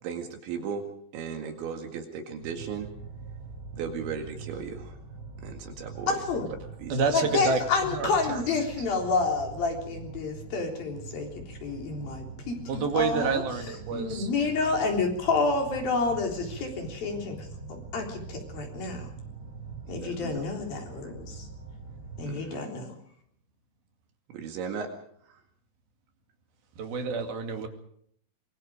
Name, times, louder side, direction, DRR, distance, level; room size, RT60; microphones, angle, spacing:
voice 1, 0.0-0.8 1.1-2.9 3.7-5.0 5.4-6.2 6.8-7.0 19.9-20.4 22.2-22.7 24.3-24.9 25.3-25.4, right 6 dB, 75° right, 5 dB, 4.3 m, -36 dB
sound 1, 2.4-22.3, right 4 dB, 20° right, 6.3 m, -43 dB
voice 2, 6.1-6.5 7.1-13.4 13.9-19.1 19.9-21.5 22.2-22.9, left 4 dB, 50° left, 2 dB, 5.2 m, -29 dB
voice 3, 6.9-7.6 7.9-8.4 12.7-14.3 26.8-27.7, right 5 dB, 55° right, 5 dB, 3.9 m, -28 dB
25.5 x 23.0 x 5.0 m, 0.66 s
omnidirectional pair, 5.6 m